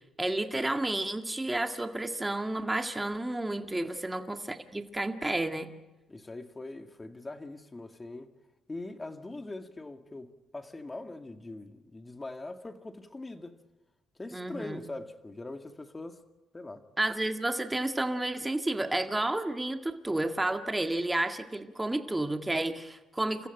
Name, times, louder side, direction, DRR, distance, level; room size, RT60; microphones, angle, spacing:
voice 1, 0.2-5.7 14.3-14.9 17.0-23.5, right 2 dB, 15° right, 1.9 m, -31 dB
voice 2, 6.1-8.3 8.7-13.6 14.2-16.2 16.5-16.8, left 2 dB, 20° left, 2.1 m, -42 dB
29.0 x 15.0 x 9.1 m
cardioid pair, 85°, 0 cm